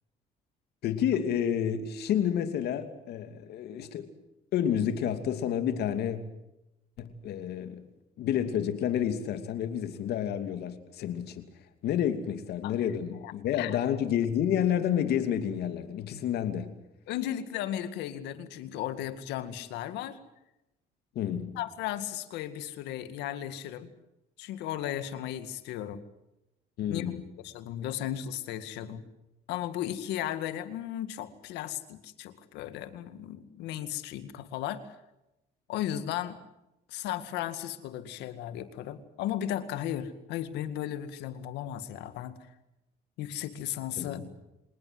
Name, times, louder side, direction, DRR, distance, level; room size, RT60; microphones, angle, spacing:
voice 1, 0.8-4.1 4.5-6.2 7.0-7.9 8.2-11.5 11.8-16.7 21.1-21.6 26.8-27.3 44.0-44.3, left 9 dB, 70° left, 8 dB, 2.8 m, -30 dB
voice 2, 13.2-13.8 17.1-20.2 21.6-23.9 24.4-26.0 26.9-27.1 27.4-29.0 29.5-34.8 35.7-36.4 36.9-42.4 43.2-44.2, left 11 dB, 90° left, 11 dB, 2.1 m, -35 dB
26.5 x 19.5 x 7.9 m, 0.91 s
cardioid pair, 110°, 17 cm